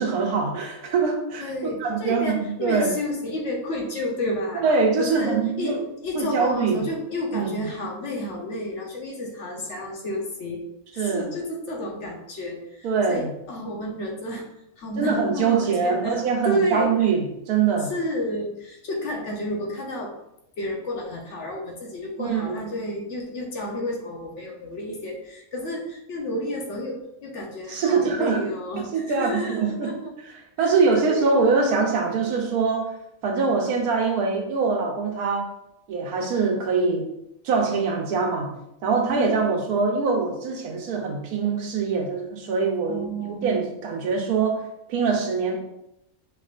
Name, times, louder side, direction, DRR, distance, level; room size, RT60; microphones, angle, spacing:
voice 1, 0.0-2.9 4.5-5.8 6.1-6.8 7.3-7.5 11.0-11.3 12.8-13.3 15.0-17.9 22.2-22.6 27.7-28.5 28.8-29.9 30.6-32.9 33.2-35.5 35.9-37.1 37.4-38.5 38.8-45.6, right 4 dB, 90° right, 2 dB, 1.2 m, -23 dB
voice 2, 1.4-4.6 5.0-10.6 10.9-14.4 14.8-16.2 16.4-16.9 17.9-20.1 20.6-30.0 30.9-31.4 39.0-39.5 42.9-43.6, left 1 dB, 60° left, 0 dB, 1.0 m, -31 dB
5.1 x 3.3 x 2.4 m, 0.83 s
omnidirectional pair, 1.5 m